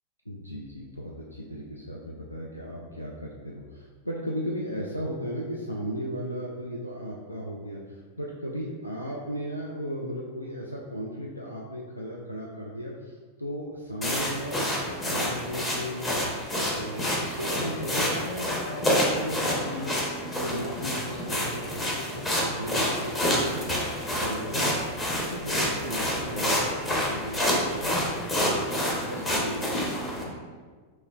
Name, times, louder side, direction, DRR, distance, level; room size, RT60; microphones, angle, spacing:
voice 1, 0.3-16.3 16.7-20.0 20.4-24.8 25.2-30.4, equal, 85° left, -2 dB, 0.3 m, -36 dB
sound 1, 14.0-30.2, equal, 20° left, 0.8 m, -28 dB
6.0 x 2.1 x 2.3 m, 1.5 s
figure-of-eight pair, 90°, 0 cm